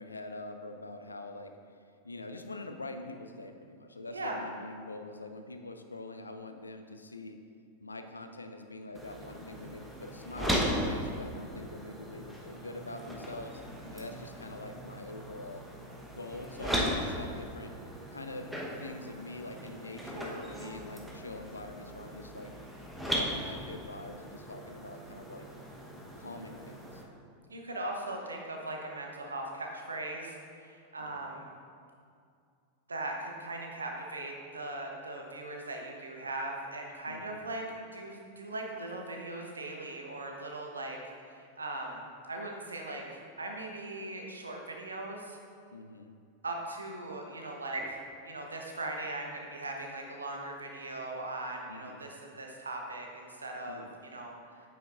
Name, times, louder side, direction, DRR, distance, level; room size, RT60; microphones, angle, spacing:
voice 1, 0.0-1.5 2.0-7.4 7.8-13.6 13.9-15.6 16.1-17.7 18.1-18.5 18.8-22.5 23.1-25.4 26.2-27.0 31.0-31.4 37.1-37.5 45.7-46.2 51.7-52.1 53.7-53.9, left 2 dB, 80° left, 7 dB, 0.5 m, -44 dB
sound 1, 8.9-27.0, equal, 5° right, 1.1 m, -38 dB
voice 2, 27.5-31.5 32.9-41.0 41.2-45.4 46.4-48.0 48.2-54.5, right 2 dB, 75° right, 1 dB, 1.0 m, -39 dB
9.0 x 7.7 x 2.5 m, 2.3 s
figure-of-eight pair, 90°, 0 cm